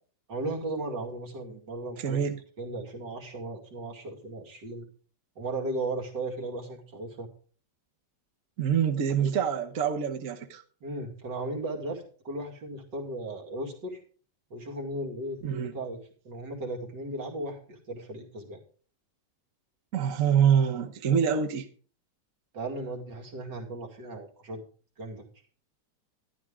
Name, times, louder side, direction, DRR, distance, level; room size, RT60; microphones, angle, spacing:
voice 1, 0.3-2.2 2.6-4.9 5.4-7.3 9.2-9.3 10.8-14.0 14.5-18.6 22.5-24.6 25.0-25.2, right 2 dB, 75° right, 0 dB, 3.0 m, -36 dB
voice 2, 2.0-2.4 8.6-10.6 15.4-15.7 19.9-21.7, right 8 dB, 55° right, 4 dB, 1.3 m, -25 dB
12.0 x 11.5 x 3.7 m, 0.41 s
omnidirectional pair, 1.9 m